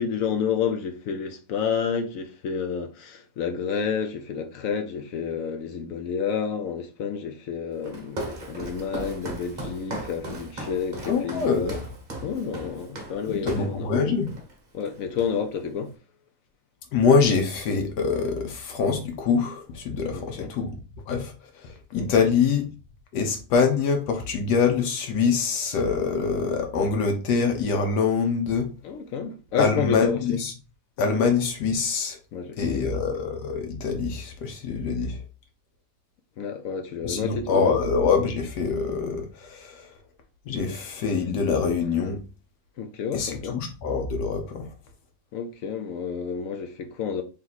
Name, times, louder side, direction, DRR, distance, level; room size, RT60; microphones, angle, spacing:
voice 1, 0.0-11.8 12.2-14.0 14.7-16.0 20.1-20.5 21.9-22.2 28.8-30.4 32.3-33.1 36.4-37.8 42.8-43.6 45.3-47.2, left 6 dB, 70° left, 0.8 m, -30 dB
Walk footsteps, 7.8-13.8 14.3-14.5 14.8-15.6, right 1 dB, 35° right, 0.8 m, -37 dB
voice 2, 11.0-11.8 13.3-14.3 16.9-20.7 21.1-22.6 23.1-28.7 29.6-30.5 31.0-32.2 32.6-35.2 37.0-40.0 40.5-42.2 43.1-44.7, left 5 dB, 85° left, 1.4 m, -24 dB
3.3 x 2.9 x 3.9 m
omnidirectional pair, 1.7 m